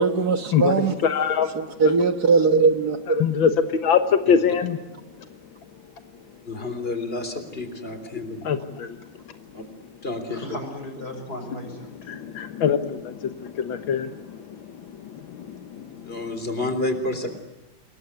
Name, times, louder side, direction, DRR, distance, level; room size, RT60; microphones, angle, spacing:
voice 1, 0.0-0.9 1.6-3.2, right 4 dB, 55° right, 7 dB, 1.8 m, -20 dB
voice 2, 0.5-1.8 3.1-4.8 8.3-9.0 12.1-16.4, left 7 dB, 85° left, 8 dB, 2.0 m, -24 dB
voice 3, 6.5-8.5 9.5-9.6 10.0-10.4 15.7-17.4, left 2 dB, 30° left, 8 dB, 3.8 m, -30 dB
voice 4, 10.3-12.5, left 1 dB, 50° left, 4 dB, 6.7 m, -37 dB
28.0 x 21.5 x 9.6 m, 1.0 s
omnidirectional pair, 2.1 m